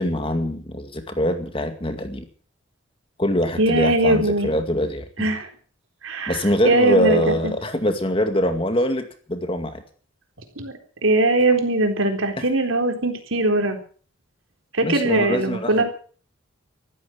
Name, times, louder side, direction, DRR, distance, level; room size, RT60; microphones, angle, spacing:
voice 1, 0.0-2.3 3.2-5.3 6.3-9.8 12.4-12.5 14.8-15.8, left 1 dB, 25° left, 7 dB, 2.2 m, -23 dB
voice 2, 3.6-4.5 5.2-5.5 6.0-6.4 6.6-7.3 10.6-10.7 11.0-13.8 14.7-15.8, right 2 dB, 80° right, 5 dB, 3.9 m, -20 dB
14.5 x 13.5 x 7.1 m, 0.43 s
head